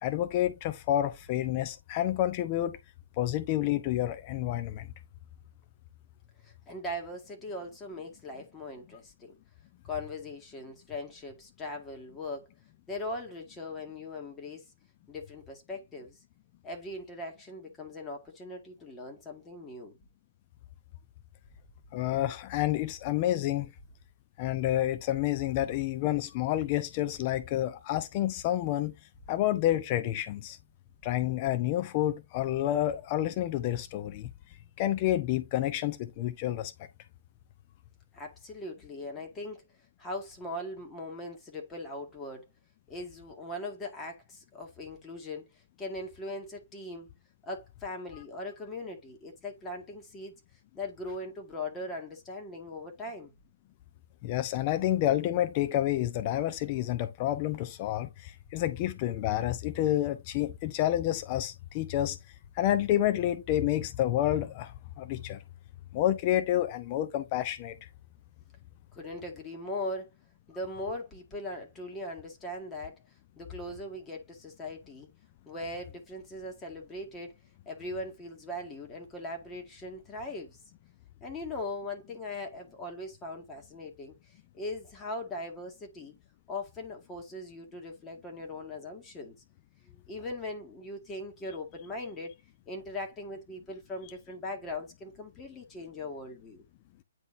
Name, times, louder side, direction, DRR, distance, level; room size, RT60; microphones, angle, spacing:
voice 1, 0.0-2.8 3.2-4.9 21.9-23.7 24.4-28.9 29.3-30.6 31.0-34.3 34.8-36.7 54.2-62.2 62.6-64.7 65.0-65.4 65.9-67.8, left 13 dB, 30° left, 0.6 m, -29 dB
voice 2, 6.4-9.3 9.8-12.5 12.9-14.7 15.1-16.2 16.6-20.0 38.1-39.6 40.0-42.5 42.9-47.1 47.4-50.4 50.7-53.3 68.9-70.1 70.5-75.1 75.5-77.4 77.7-80.6 81.2-86.2 86.5-89.4 89.8-92.4 92.7-96.6, left 1 dB, 15° left, 2.0 m, -40 dB
9.4 x 3.9 x 2.7 m
figure-of-eight pair, 130°, 0 cm